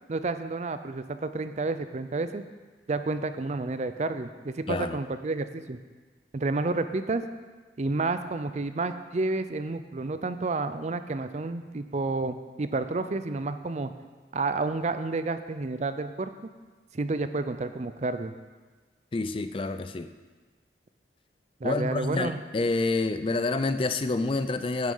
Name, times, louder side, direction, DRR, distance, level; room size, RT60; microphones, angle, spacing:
voice 1, 0.1-2.4 2.9-5.8 6.3-7.2 7.8-13.9 14.3-16.5 16.9-18.3 21.6-22.4, right 3 dB, 40° right, 11 dB, 0.5 m, -30 dB
voice 2, 4.7-5.0 19.1-20.1 21.6-24.9, left 3 dB, 30° left, 10 dB, 0.4 m, -28 dB
9.4 x 8.9 x 5.5 m, 1.4 s
head